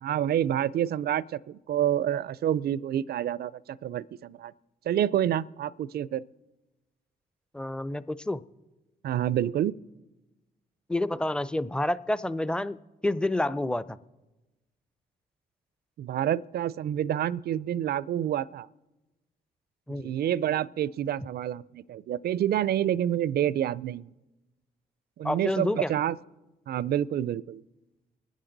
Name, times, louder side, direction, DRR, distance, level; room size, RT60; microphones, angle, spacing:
voice 1, 0.0-4.5 4.9-6.3 9.0-9.8 16.0-18.7 20.0-24.1 25.2-26.2 26.7-27.6, right 11 dB, 60° right, 0.4 m, -28 dB
voice 2, 7.5-8.4 10.9-12.8 13.0-14.0 19.9-20.1 25.2-25.9, left 1 dB, 5° left, 0.5 m, -28 dB
25.0 x 10.5 x 3.9 m
supercardioid pair, 65°, 18 cm